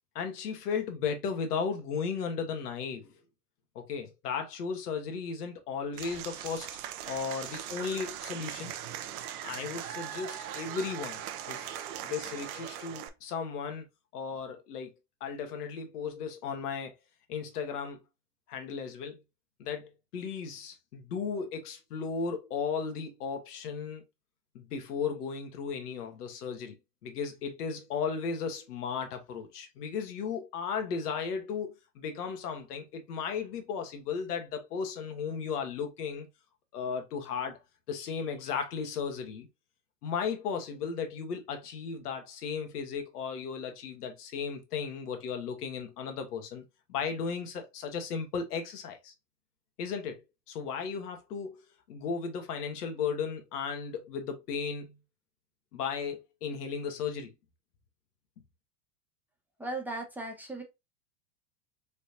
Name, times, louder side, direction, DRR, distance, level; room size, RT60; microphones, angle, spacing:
voice 1, 0.1-3.1 3.7-6.8 7.1-8.7 9.4-11.2 11.5-11.7 12.0-13.8 14.1-14.9 15.2-16.9 17.3-18.0 18.5-19.2 19.6-24.0 24.5-26.8 27.0-36.3 36.7-37.6 37.9-39.5 40.0-46.6 46.9-49.1 49.8-50.2 50.5-51.6 51.9-55.0 55.7-57.3, left 6 dB, 80° left, 1.2 m, -35 dB
Applause / Crowd, 5.9-13.1, right 10 dB, 65° right, 0.8 m, -40 dB
voice 2, 59.6-60.6, right 2 dB, 5° right, 1.1 m, -37 dB
4.3 x 3.4 x 2.7 m
hypercardioid pair, 105°, 46 cm